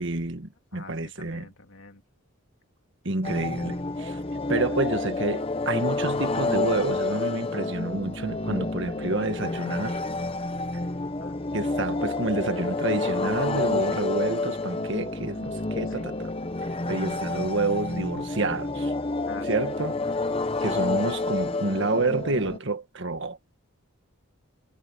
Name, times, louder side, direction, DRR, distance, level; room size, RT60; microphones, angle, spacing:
voice 1, 0.0-1.5 3.0-4.2 4.5-10.0 11.5-16.3 16.9-18.9 19.4-20.0 20.6-23.4, right 2 dB, 55° right, 1.6 m, -29 dB
voice 2, 0.7-2.0 11.2-11.4 15.9-16.1 19.2-19.5 20.0-20.1 20.7-20.8, left 3 dB, 70° left, 2.9 m, -46 dB
sound 1, 3.2-22.6, left 2 dB, 25° left, 0.8 m, -29 dB
head